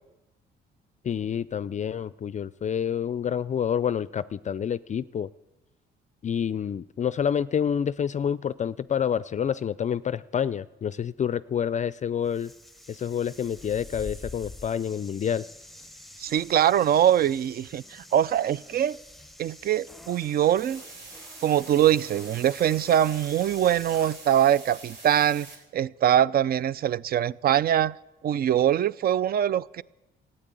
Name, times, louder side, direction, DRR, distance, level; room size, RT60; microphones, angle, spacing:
voice 1, 1.0-5.3 6.2-12.5 12.9-15.4, left 8 dB, 40° left, 0.4 m, -28 dB
sound 1, 12.2-24.3, left 1 dB, ahead, 0.9 m, -47 dB
voice 2, 16.2-19.0 19.4-20.8 21.4-25.5 25.7-28.0 28.2-29.8, right 10 dB, 50° right, 0.4 m, -23 dB
sound 2, 20.6-25.6, right 3 dB, 70° right, 4.1 m, -45 dB
14.5 x 8.7 x 9.1 m
cardioid pair, 90°, 20 cm